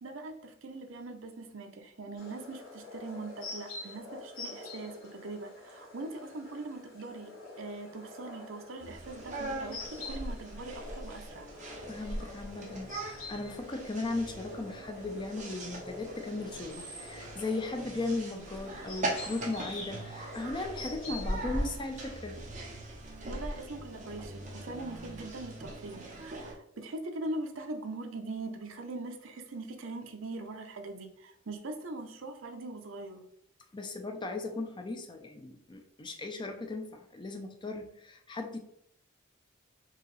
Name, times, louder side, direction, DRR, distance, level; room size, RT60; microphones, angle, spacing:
voice 1, 0.0-11.5 23.2-33.2, right 2 dB, 65° right, 5 dB, 0.6 m, -41 dB
sound 1, 2.2-21.2, left 2 dB, 65° left, 1.4 m, -46 dB
sound 2, 8.8-26.5, right 1 dB, 35° right, 0.9 m, -41 dB
voice 2, 11.9-22.4 33.7-38.6, left 2 dB, 20° left, 4 dB, 0.5 m, -37 dB
4.7 x 2.8 x 3.1 m, 0.74 s
head